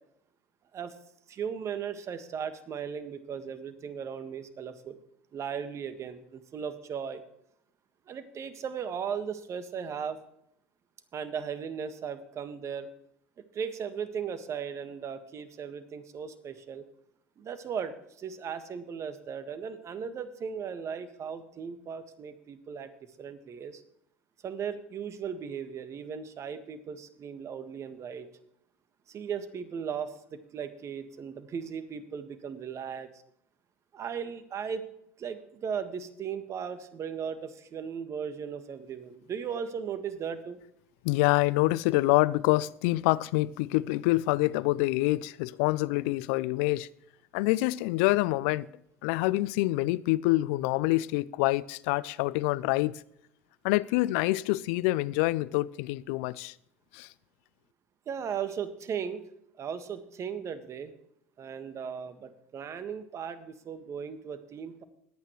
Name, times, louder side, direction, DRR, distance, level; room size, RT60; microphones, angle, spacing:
voice 1, 1.3-5.0 5.3-7.2 8.1-10.2 11.1-12.9 13.5-16.8 17.4-22.9 23.2-23.8 24.4-28.3 29.1-33.1 33.9-34.8 35.2-40.6 58.0-59.3 59.6-60.9 61.4-64.8, right 7 dB, 40° right, 1.6 m, -37 dB
voice 2, 41.0-46.9 47.3-48.7 49.0-53.0 53.6-56.5 56.9-57.1, left 19 dB, 70° left, 0.4 m, -26 dB
20.5 x 8.9 x 3.2 m
hypercardioid pair, 70°, 7 cm